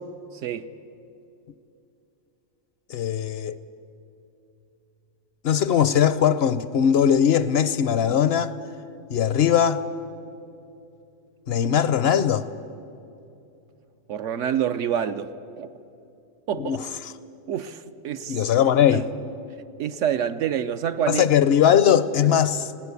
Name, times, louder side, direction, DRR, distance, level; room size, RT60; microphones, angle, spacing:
voice 1, 0.3-0.7 14.1-15.3 15.6-15.7 16.5-16.8 17.5-18.4 18.9-19.0 19.8-21.3, right 9 dB, 70° right, 0.9 m, -27 dB
voice 2, 2.9-3.6 5.4-8.5 9.1-9.8 11.5-12.5 16.6-17.1 18.3-19.1 21.1-22.7, left 9 dB, 60° left, 0.7 m, -20 dB
20.5 x 16.5 x 8.2 m
omnidirectional pair, 1.4 m